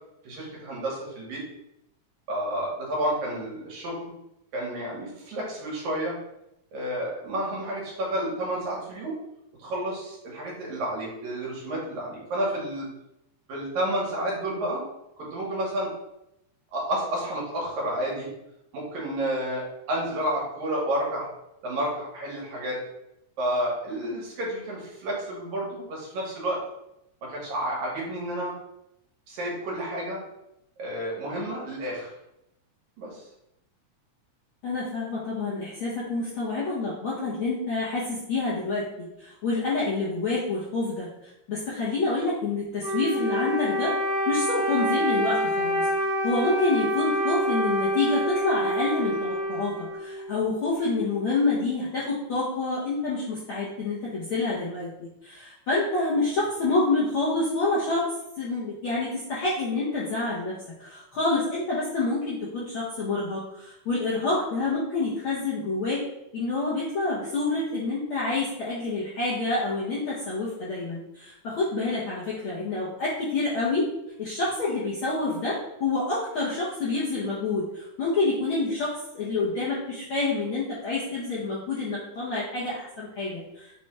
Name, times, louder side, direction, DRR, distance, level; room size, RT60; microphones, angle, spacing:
voice 1, 0.2-1.4 2.3-4.1 4.5-6.1 6.7-9.2 9.6-12.9 13.5-14.8 15.2-15.9 16.7-18.3 18.7-21.3 21.6-22.8 23.4-26.6 27.2-28.5 29.3-30.2 30.8-32.1 33.0-33.2, right 1 dB, 75° right, -3 dB, 2.5 m, -30 dB
voice 2, 34.6-41.1 41.5-43.9 44.3-45.9 46.2-54.9 55.2-58.0 58.4-60.5 60.8-66.0 66.3-73.8 74.2-83.8, left 3 dB, 70° left, -8 dB, 1.3 m, -27 dB
Wind instrument woodwind instrument, 42.8-50.4, equal, 45° right, 1.7 m, -27 dB
6.8 x 2.3 x 3.2 m, 0.83 s
omnidirectional pair, 3.5 m